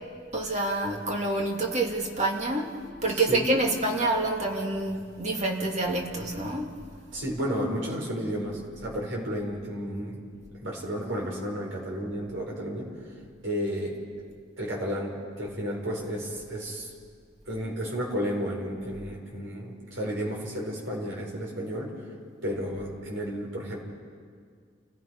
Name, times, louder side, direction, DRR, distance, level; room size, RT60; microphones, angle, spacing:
voice 1, 0.3-2.7 3.0-6.7, right 2 dB, 40° right, 0 dB, 2.4 m, -27 dB
voice 2, 3.1-3.4 7.1-10.3 10.6-13.2 13.4-14.0 14.6-16.9 17.5-22.0 22.4-23.8, equal, 90° right, -1 dB, 5.1 m, -32 dB
29.5 x 17.0 x 5.5 m, 2.1 s
head